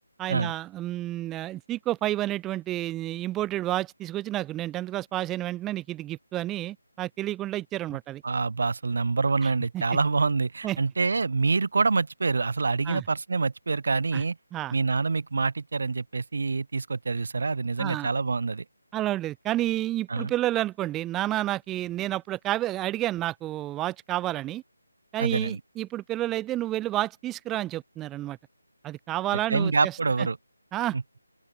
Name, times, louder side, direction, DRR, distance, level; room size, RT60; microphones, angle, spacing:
voice 1, 0.2-8.2 9.7-9.8 10.6-10.8 12.9-13.0 14.1-14.2 14.5-14.8 17.8-18.1 18.9-24.6 25.1-28.4 28.8-29.9 30.2-30.3 30.7-31.0, right 14 dB, 10° right, 0.3 m, -30 dB
voice 2, 8.2-14.4 14.7-18.6 20.1-20.3 25.2-25.6 29.3-30.4 30.9-31.0, right 4 dB, 55° right, 1.6 m, -26 dB
open air
figure-of-eight pair, 160°, 0 cm